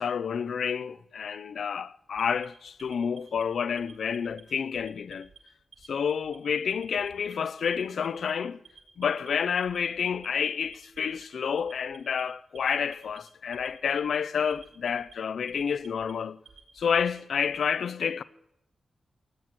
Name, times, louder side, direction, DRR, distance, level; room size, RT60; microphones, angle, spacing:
voice 1, 0.0-5.3 5.9-8.6 9.0-16.4 16.8-18.2, left 7 dB, 80° left, 0.6 m, -29 dB
Alarm, 2.1-3.4 3.8-4.4 4.7-5.4 5.7-6.4 6.7-7.3 7.7-8.3 8.7-9.3 9.6-10.3 10.6-11.2 11.6-12.2 12.6-13.2 13.5-14.2 14.5-15.1 15.5-16.1 16.5-17.6, right 6 dB, 85° right, 6.5 m, -53 dB
17.0 x 10.5 x 6.1 m
wide cardioid pair, 95°, 0 cm